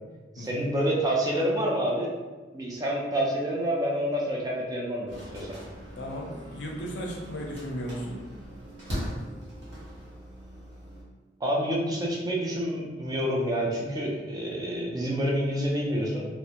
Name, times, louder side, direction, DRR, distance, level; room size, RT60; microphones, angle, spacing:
voice 1, 0.4-2.1 2.5-5.5 11.4-16.3, equal, 20° right, -3 dB, 0.4 m, -28 dB
sound 1, 5.1-11.0, equal, 65° right, 0.9 m, -40 dB
voice 2, 6.0-8.2, equal, 70° left, -1 dB, 0.5 m, -35 dB
2.3 x 2.0 x 2.8 m, 1.3 s
head